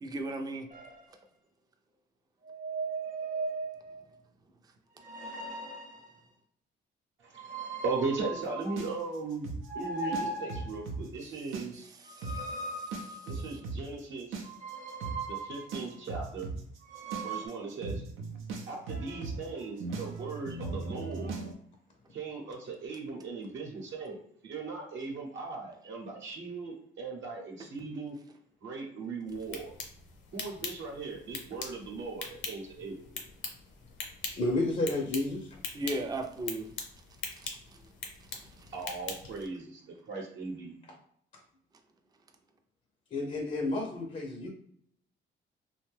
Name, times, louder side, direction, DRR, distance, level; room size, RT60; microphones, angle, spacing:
voice 1, 0.0-0.7 12.2-13.2 35.7-36.7 37.4-37.5, right 1 dB, 20° right, 5 dB, 0.4 m, -36 dB
sound 1, 0.7-1.0 2.4-4.0 5.0-6.1 7.3-9.1 9.6-10.8 12.1-13.6 14.4-15.8 16.8-17.5, right 3 dB, 45° right, 0.8 m, -38 dB
voice 2, 7.2-9.5 9.7-11.9 13.2-14.5 15.3-16.5 17.2-18.0 18.6-21.4 22.1-28.2 28.6-29.7 30.3-33.0 38.7-40.8, right 4 dB, 70° right, -1 dB, 0.9 m, -38 dB
sound 2, 8.8-11.0 11.4-11.9 12.2-12.4 12.9-21.5, right 4 dB, 90° right, 0.5 m, -38 dB
sound 3, 29.3-39.5, left 4 dB, 70° left, 0.7 m, -43 dB
voice 3, 34.3-35.6 43.1-44.5, left 2 dB, 35° left, 0 dB, 0.5 m, -31 dB
2.5 x 2.2 x 3.2 m, 0.66 s
cardioid pair, 90°, 20 cm